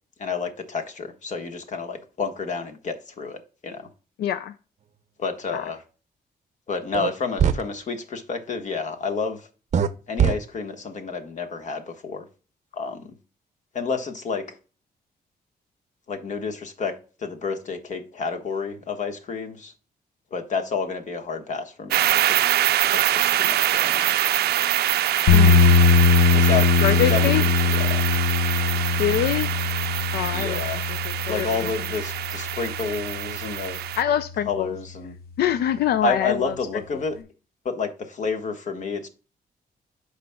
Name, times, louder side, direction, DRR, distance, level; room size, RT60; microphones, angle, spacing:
voice 1, 0.2-3.8 5.2-5.8 6.7-9.4 10.1-12.2 12.7-13.1 13.7-14.4 16.1-16.9 17.2-19.7 20.3-22.4 22.9-24.1 26.3-26.7 26.9-28.0 30.3-30.8 31.3-33.8 34.5-35.1 36.0-37.2 37.6-39.1, left 4 dB, 50° left, 1.3 m, -30 dB
voice 2, 4.2-4.5 5.5-5.7 25.3-25.7 26.8-27.4 29.0-29.5 30.1-31.7 34.0-34.8 35.4-36.5 36.9-37.0, left 10 dB, 90° left, 0.5 m, -25 dB
sound 1, 6.9-7.1 7.4-7.6 9.7-9.9 10.2-10.3, right 8 dB, 45° right, 0.6 m, -19 dB
sound 2, 21.9-34.0, right 13 dB, 90° right, 0.4 m, -24 dB
sound 3, 25.3-33.4, left 4 dB, 75° left, 0.9 m, -21 dB
13.0 x 5.0 x 2.2 m
cardioid pair, 130°, 16 cm